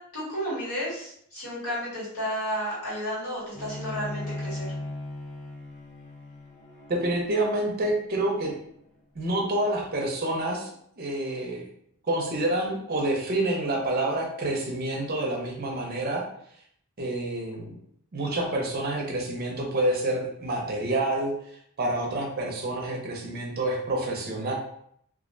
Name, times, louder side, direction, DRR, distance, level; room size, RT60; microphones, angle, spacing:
voice 1, 0.1-4.7, equal, 80° left, -7 dB, 1.4 m, -32 dB
Bowed string instrument, 3.5-8.9, left 1 dB, 35° left, 0.7 m, -38 dB
voice 2, 6.9-8.5 9.2-10.7 11.0-11.6 12.1-16.2 17.0-17.7 18.1-21.3 21.8-24.5, right 1 dB, 45° right, 0 dB, 0.5 m, -28 dB
2.4 x 2.1 x 2.5 m, 0.68 s
head